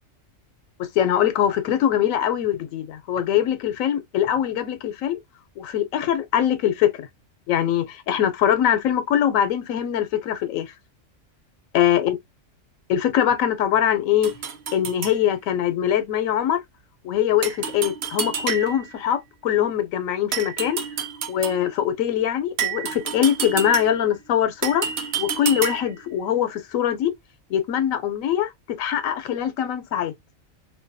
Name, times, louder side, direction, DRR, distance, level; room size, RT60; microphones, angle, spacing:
voice 1, 1.0-5.2 5.6-7.1 7.5-10.7 11.7-12.2 12.9-14.3 14.7-16.6 17.0-20.8 21.3-24.9 25.2-27.1 27.5-28.5 28.8-30.1, left 10 dB, 85° left, 1.0 m, -22 dB
sound 1, 14.2-15.2 17.4-19.0 20.3-21.7 22.6-24.1 24.6-26.0, right 7 dB, 60° right, 0.8 m, -29 dB
2.5 x 2.2 x 2.5 m
omnidirectional pair, 1.4 m